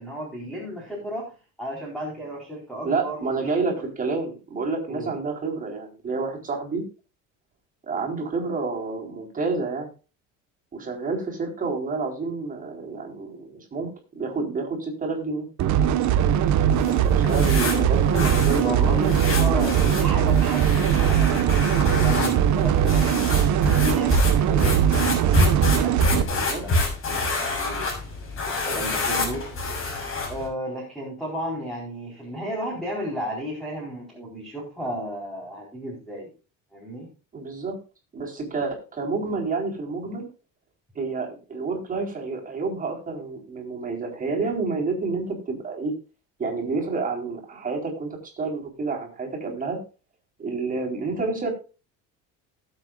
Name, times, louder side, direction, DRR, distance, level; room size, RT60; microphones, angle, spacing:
voice 1, 0.0-1.3 1.6-3.4 4.9-5.1 18.6-24.1 24.5-24.8 25.2-26.8 27.1-27.3 27.5-27.9 28.4-29.5 30.3-36.3 36.7-37.1, equal, ahead, -4 dB, 4.4 m, -33 dB
voice 2, 2.8-6.8 7.8-9.9 10.7-15.5 16.8-19.8 26.2-26.6 37.3-37.8 38.1-40.3 40.9-45.9 46.4-49.8 50.4-51.5, right 4 dB, 25° right, 1 dB, 4.3 m, -29 dB
sound 1, 15.6-26.2, right 9 dB, 55° right, 1.4 m, -20 dB
sound 2, 16.7-30.5, left 2 dB, 35° left, 6.6 m, -27 dB
19.5 x 8.0 x 2.5 m, 0.33 s
cardioid pair, 160°, 34 cm